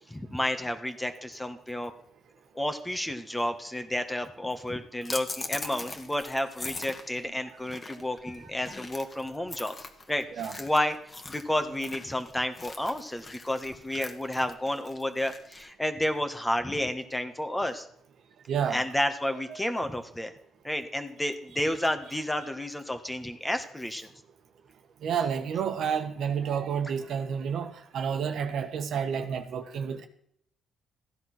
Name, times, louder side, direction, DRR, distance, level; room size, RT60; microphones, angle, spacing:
voice 1, 0.1-1.9 2.5-9.7 10.1-10.2 10.6-11.0 11.3-17.9 18.7-20.3 20.6-24.1, left 1 dB, 10° left, 1.5 m, -31 dB
sound 1, 5.0-15.7, left 3 dB, 25° left, 1.7 m, -41 dB
voice 2, 18.5-18.9 19.5-19.6 25.0-30.1, right 7 dB, 65° right, 1.6 m, -30 dB
15.5 x 10.5 x 6.2 m
cardioid pair, 115°, 0 cm